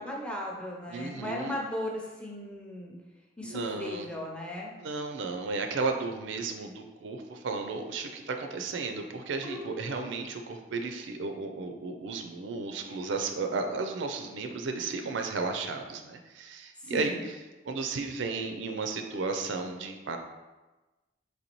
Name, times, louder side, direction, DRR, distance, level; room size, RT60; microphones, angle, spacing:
voice 1, 0.0-2.9 3.4-4.7 9.4-9.7 16.8-17.3, left 1 dB, 5° left, -2 dB, 0.5 m, -37 dB
voice 2, 0.9-1.5 3.5-4.1 4.8-17.2 17.6-20.2, right 4 dB, 75° right, 5 dB, 0.4 m, -34 dB
4.1 x 3.2 x 3.0 m, 1.2 s
head